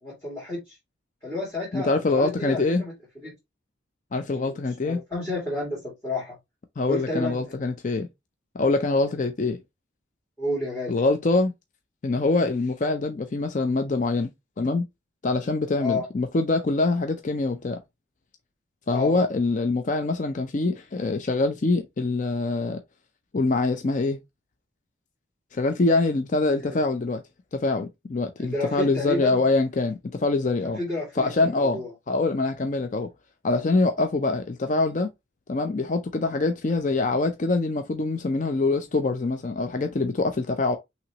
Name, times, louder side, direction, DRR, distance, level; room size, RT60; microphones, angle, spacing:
voice 1, 0.0-0.8 1.2-3.3 4.3-6.4 6.9-7.7 10.4-11.0 15.8-16.1 18.9-19.1 26.6-26.8 28.4-29.4 30.6-31.9, left 2 dB, 15° left, 2.3 m, -31 dB
voice 2, 1.7-2.8 4.1-5.0 6.8-8.1 8.5-9.6 10.9-11.5 12.0-14.3 14.6-14.9 15.2-17.8 18.9-22.8 23.3-24.2 25.5-27.2 27.5-30.8 31.2-31.8 32.1-33.1 33.4-35.1 35.5-40.8, left 3 dB, 40° left, 0.4 m, -24 dB
5.9 x 3.0 x 2.9 m
head